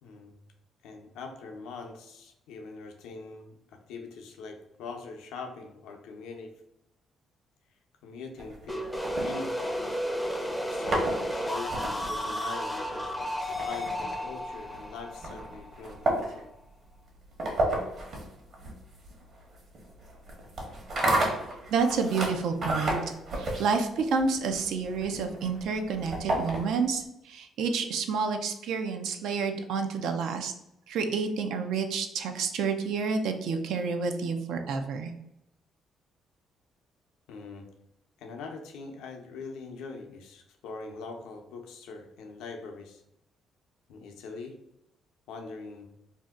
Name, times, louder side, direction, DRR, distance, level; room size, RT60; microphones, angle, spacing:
voice 1, 0.0-0.4 0.8-3.6 3.9-6.5 8.0-8.8 9.2-9.8 10.6-16.4 37.3-37.6 38.2-43.0 43.9-44.5 45.3-45.9, left 4 dB, 85° left, 3 dB, 0.5 m, -42 dB
sound 1, 8.4-10.0 10.6-27.0, right 1 dB, 55° right, 1.1 m, -33 dB
sound 2, 8.7-16.4, equal, 5° left, 0.5 m, -33 dB
voice 2, 21.7-23.0 23.4-30.5 30.9-35.1, right 5 dB, 80° right, 6 dB, 0.4 m, -29 dB
2.6 x 2.1 x 3.5 m, 0.83 s
cardioid pair, 85°, 0 cm